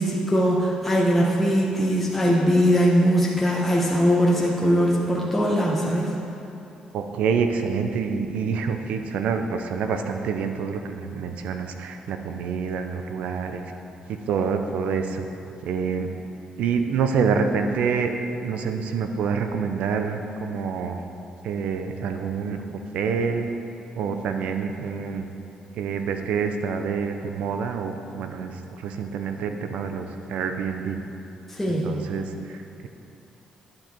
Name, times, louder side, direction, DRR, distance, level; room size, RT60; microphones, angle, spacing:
voice 1, 0.0-6.1 31.6-32.0, equal, 5° left, -5 dB, 1.3 m, -21 dB
voice 2, 6.9-13.6 14.1-15.2 15.6-16.1 16.6-18.1 18.4-21.0 21.4-23.5 24.0-25.3 25.7-31.0 31.7-32.9, right 6 dB, 80° right, 6 dB, 0.7 m, -27 dB
11.0 x 7.6 x 4.6 m, 2.8 s
cardioid pair, 100°, 2 cm